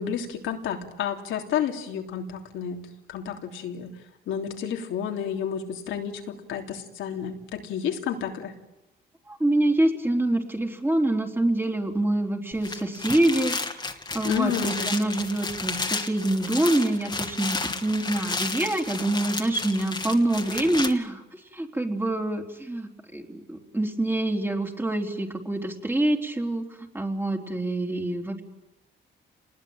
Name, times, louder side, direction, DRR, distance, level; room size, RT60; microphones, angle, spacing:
voice 1, 0.0-2.8 3.1-3.9 4.3-8.5 14.2-14.9, left 8 dB, 85° left, 3 dB, 3.3 m, -30 dB
voice 2, 9.3-13.7 14.1-28.4, right 1 dB, 10° right, 4 dB, 3.9 m, -26 dB
sound 1, 12.5-20.9, left 3 dB, 20° left, 2.5 m, -32 dB
28.0 x 20.5 x 9.1 m, 0.99 s
cardioid pair, 90°, 20 cm